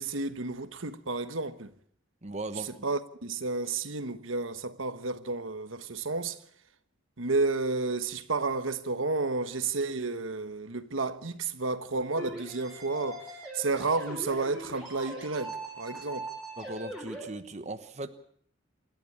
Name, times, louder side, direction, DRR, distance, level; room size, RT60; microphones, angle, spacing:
voice 1, 0.0-1.7 2.8-6.4 7.2-13.3 13.5-16.3, right 3 dB, 80° right, 1.3 m, -31 dB
voice 2, 2.2-2.7 16.6-18.1, right 2 dB, 35° right, 1.1 m, -38 dB
sound 1, 12.2-17.2, right 1 dB, 5° right, 7.0 m, -41 dB
27.0 x 12.0 x 8.7 m
head